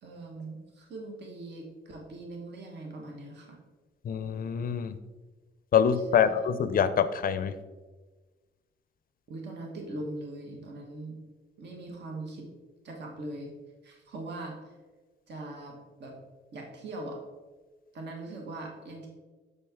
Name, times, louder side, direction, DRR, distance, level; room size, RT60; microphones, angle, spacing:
voice 1, 0.0-3.6 6.1-6.3 9.3-11.2 11.6-12.5 12.8-13.5 13.8-14.7 15.3-16.1 16.5-17.2 17.9-19.1, right 2 dB, 60° right, 1 dB, 1.2 m, -41 dB
voice 2, 4.0-5.0 5.7-7.5, left 7 dB, 45° left, 12 dB, 0.4 m, -25 dB
6.7 x 4.3 x 3.5 m, 1.3 s
cardioid pair, 90°, 20 cm